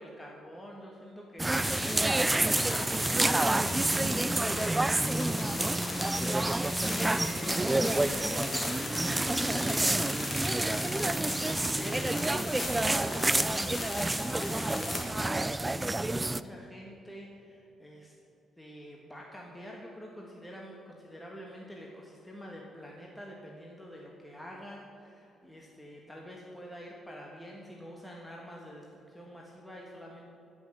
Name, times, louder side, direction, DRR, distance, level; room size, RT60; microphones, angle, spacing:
voice 1, 0.0-5.9 6.9-9.9 10.8-18.1 18.6-30.3, equal, 10° left, -2 dB, 1.5 m, -46 dB
sound 1, 1.4-16.4, right 2 dB, 15° right, 0.4 m, -29 dB
sound 2, 1.5-15.0, left 2 dB, 30° left, 1.8 m, -38 dB
13.5 x 6.2 x 7.8 m, 2.8 s
cardioid pair, 90°, 0 cm